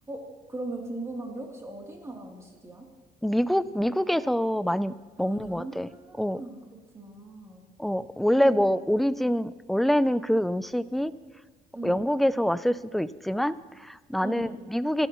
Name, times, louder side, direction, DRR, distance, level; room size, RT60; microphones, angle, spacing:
voice 1, 0.5-2.9 5.2-6.6 6.9-7.7 8.4-8.6 11.7-12.1 14.2-14.6, right 2 dB, 15° right, -1 dB, 3.1 m, -39 dB
voice 2, 3.2-5.9 6.2-6.4 7.8-11.1 11.8-15.1, equal, ahead, 15 dB, 0.4 m, -25 dB
26.5 x 12.0 x 3.1 m, 1.3 s
cardioid pair, 110°, 17 cm